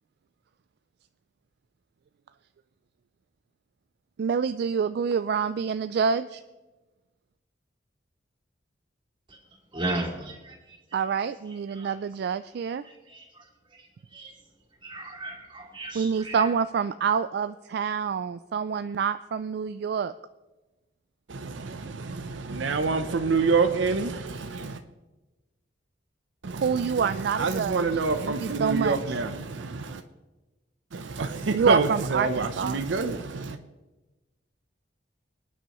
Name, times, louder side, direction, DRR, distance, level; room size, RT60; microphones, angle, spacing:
voice 1, 4.2-6.4 10.9-12.8 15.9-20.1 26.6-27.8 28.2-29.2 31.5-32.8, right 6 dB, 60° right, 0.3 m, -27 dB
voice 2, 9.7-11.0 11.7-12.0 12.8-14.3 14.8-16.5, right 2 dB, 30° right, 2.5 m, -36 dB
voice 3, 21.3-24.8 26.4-30.0 30.9-33.6, right 4 dB, 90° right, 0.7 m, -27 dB
25.0 x 9.5 x 3.0 m
head